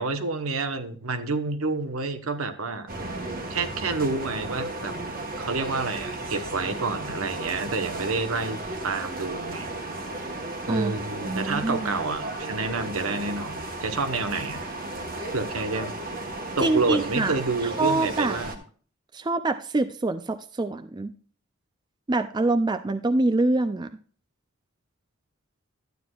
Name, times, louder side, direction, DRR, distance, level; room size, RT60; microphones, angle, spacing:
voice 1, 0.0-2.9 3.5-4.9 5.4-9.7 10.7-13.5 13.8-14.6 15.3-15.9 16.6-18.6, right 3 dB, 80° right, 9 dB, 1.0 m, -29 dB
sound 1, 2.9-18.6, right 2 dB, 45° right, 1.3 m, -34 dB
voice 2, 11.2-11.9 16.6-17.4 17.8-18.4 19.1-21.1 22.1-23.9, right 2 dB, 20° right, 9 dB, 0.4 m, -25 dB
12.0 x 9.4 x 2.4 m, 0.43 s
head